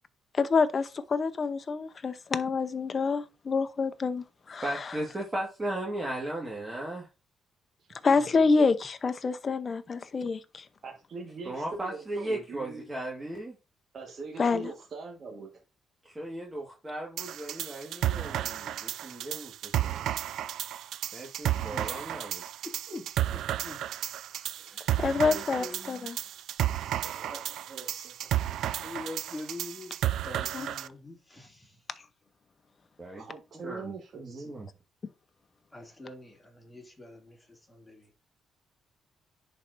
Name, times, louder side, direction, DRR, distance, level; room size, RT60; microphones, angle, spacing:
voice 1, 0.3-4.9 8.0-10.6 14.4-14.7 25.0-26.1 30.5-30.7, left 4 dB, 40° left, 0.7 m, -27 dB
voice 2, 4.6-7.1 11.5-13.5 16.0-20.1 21.1-22.4 33.0-33.2 33.6-34.7, right 1 dB, 20° right, 1.7 m, -36 dB
voice 3, 8.1-8.4 21.6-22.3 22.9-23.9 24.5-26.1 28.8-31.8 35.7-38.1, left 2 dB, 15° left, 2.6 m, -45 dB
voice 4, 10.8-12.8 13.9-15.5 27.0-28.8 33.2-34.5, right 4 dB, 55° right, 1.5 m, -42 dB
sound 1, 17.2-30.9, right 12 dB, 80° right, 0.3 m, -32 dB
10.5 x 4.3 x 2.6 m
cardioid pair, 90°, 0 cm